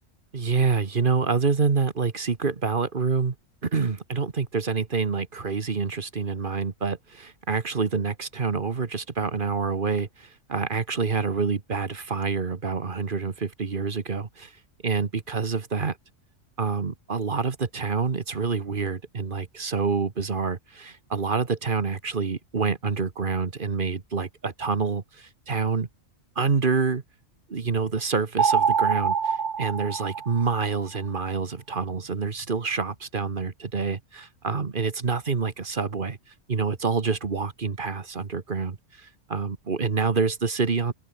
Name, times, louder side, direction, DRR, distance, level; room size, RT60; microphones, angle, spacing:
voice 1, 0.3-3.3 3.6-14.5 14.8-16.0 16.6-25.9 26.3-27.0 27.5-36.2 36.5-40.9, right 4 dB, 45° right, 1.5 m, -27 dB
sound 1, 28.4-30.8, right 6 dB, 65° right, 1.6 m, -24 dB
omnidirectional pair, 1.3 m